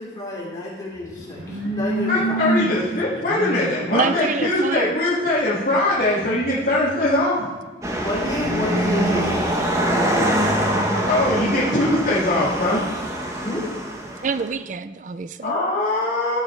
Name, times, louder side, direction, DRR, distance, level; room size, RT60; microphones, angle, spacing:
voice 1, 0.0-2.5 8.0-10.7 13.3-13.7, left 1 dB, 20° left, -6 dB, 3.2 m, -29 dB
sound 1, 1.0-2.8 3.1-3.6 6.1-7.4 7.9-9.3, right 1 dB, 80° right, 2.7 m, -27 dB
voice 2, 2.1-7.3 11.1-12.8 15.4-16.4, left 1 dB, 50° left, -9 dB, 2.0 m, -21 dB
voice 3, 3.9-4.9 14.2-15.5, right 5 dB, 40° right, 13 dB, 0.4 m, -26 dB
sound 2, 7.8-14.5, right 1 dB, 15° right, 1.0 m, -24 dB
15.0 x 5.6 x 4.6 m, 1.4 s
head